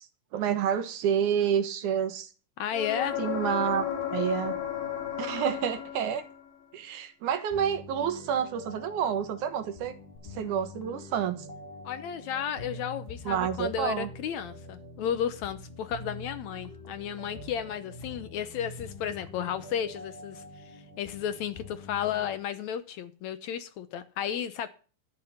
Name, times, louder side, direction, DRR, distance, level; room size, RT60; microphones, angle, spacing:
voice 1, 0.3-2.3 3.2-3.9 4.1-4.6 5.2-6.2 6.7-9.9 10.3-11.5 13.3-14.1, right 8 dB, 70° right, 2.6 m, -29 dB
voice 2, 2.6-3.2 11.8-24.7, left 9 dB, 70° left, 1.9 m, -33 dB
sound 1, 2.7-6.5 10.2-10.3, left 9 dB, 90° left, 3.8 m, -33 dB
sound 2, 7.5-22.4, left 2 dB, 20° left, 3.0 m, -45 dB
13.0 x 9.5 x 5.7 m
omnidirectional pair, 3.7 m